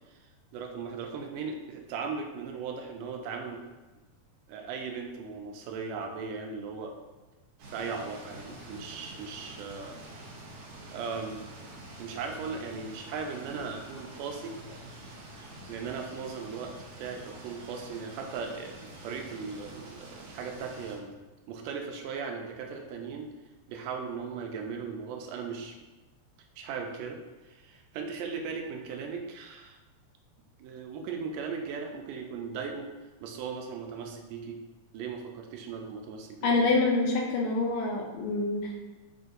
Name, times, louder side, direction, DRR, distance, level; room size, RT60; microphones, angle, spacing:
voice 1, 0.5-3.6 4.5-6.9 7.7-10.0 10.9-11.5 12.0-14.5 15.7-21.1 21.5-23.3 23.7-25.8 26.6-27.2 27.4-29.8 30.6-32.9 33.2-34.6 34.9-36.7, right 5 dB, 90° right, 3 dB, 2.2 m, -38 dB
sound 1, 7.6-21.0, right 1 dB, 70° right, 2.2 m, -47 dB
voice 2, 36.4-39.0, left 3 dB, 80° left, 0 dB, 1.7 m, -27 dB
5.2 x 2.5 x 3.8 m, 1.2 s
omnidirectional pair, 3.7 m